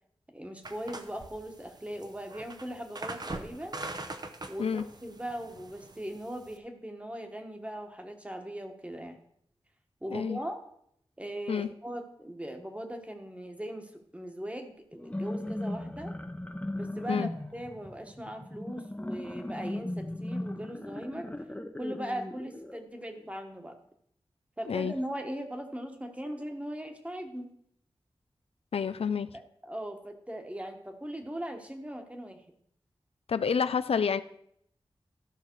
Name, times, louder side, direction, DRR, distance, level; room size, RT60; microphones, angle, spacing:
voice 1, 0.3-3.8 4.5-9.2 10.0-10.6 11.2-16.1 16.7-21.3 21.8-23.8 24.6-27.5 29.3-32.4, right 1 dB, 15° right, 5 dB, 1.3 m, -39 dB
sound 1, 0.6-6.6, right 2 dB, 45° right, 0.8 m, -42 dB
voice 2, 10.1-10.4 11.5-11.7 17.1-17.3 24.7-24.9 28.7-29.4 33.3-34.2, left 6 dB, 85° left, 13 dB, 0.4 m, -29 dB
sound 2, 14.9-22.8, left 1 dB, 15° left, 0.8 m, -37 dB
13.5 x 5.7 x 4.6 m, 0.70 s
wide cardioid pair, 95°, 10 cm